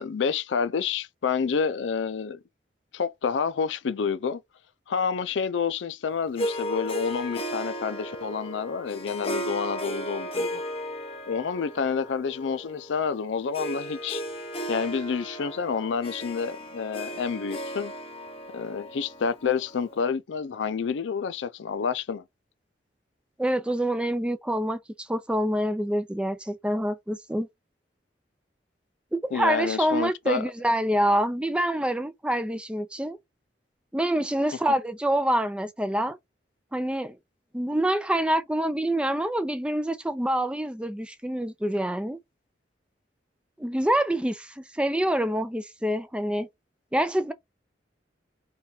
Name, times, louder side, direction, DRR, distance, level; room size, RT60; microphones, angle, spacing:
voice 1, 0.0-2.4 2.9-4.4 4.9-10.6 11.3-14.2 14.7-17.9 18.5-22.2 29.3-30.5, left 6 dB, 85° left, 0.4 m, -29 dB
Harp, 6.4-20.0, equal, 30° left, 0.9 m, -35 dB
voice 2, 23.4-27.5 29.1-33.2 33.9-36.2 36.7-37.2 37.5-42.2 43.6-46.5 46.9-47.3, right 1 dB, 5° right, 0.4 m, -26 dB
3.3 x 2.4 x 4.2 m
head